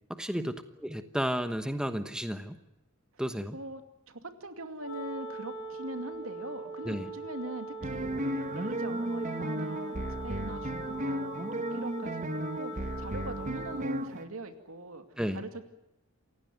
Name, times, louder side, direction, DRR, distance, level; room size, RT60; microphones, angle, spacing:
voice 1, 0.1-0.5 0.8-2.6 3.2-3.6 6.8-7.1 15.2-15.4, equal, 5° right, 9 dB, 1.1 m, -32 dB
voice 2, 4.1-15.0 15.3-15.6, right 2 dB, 80° right, 8 dB, 2.4 m, -42 dB
Wind instrument woodwind instrument, 4.8-14.0, right 2 dB, 80° left, 4.8 m, -41 dB
sound 1, 7.8-14.3, right 1 dB, 35° right, 1.3 m, -34 dB
28.0 x 16.5 x 9.5 m, 0.92 s
head